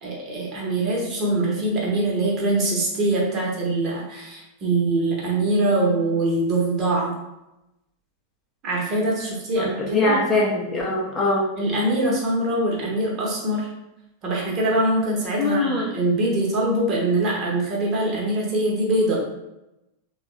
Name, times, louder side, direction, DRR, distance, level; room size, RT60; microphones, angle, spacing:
voice 1, 0.0-7.1 8.6-10.2 11.6-13.7 14.2-19.2, right 2 dB, 35° right, -3 dB, 1.1 m, -23 dB
voice 2, 9.6-11.4 15.4-15.9, left 2 dB, 20° left, -3 dB, 0.7 m, -22 dB
3.4 x 2.3 x 3.2 m, 0.92 s
figure-of-eight pair, 90°, 0 cm